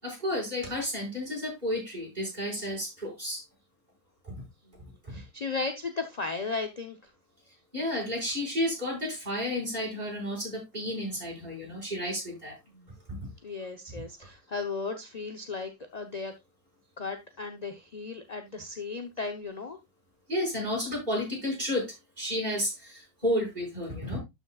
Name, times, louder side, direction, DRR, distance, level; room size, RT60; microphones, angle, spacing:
voice 1, 0.0-3.4 4.2-4.3 5.1-5.2 7.7-12.5 13.1-13.2 20.3-24.2, left 1 dB, 25° right, 5.7 m, -32 dB
voice 2, 4.6-7.1 12.7-12.9 13.4-16.3 17.0-19.8, left 4 dB, 35° left, 0.6 m, -36 dB
12.5 x 6.2 x 2.4 m
omnidirectional pair, 1.9 m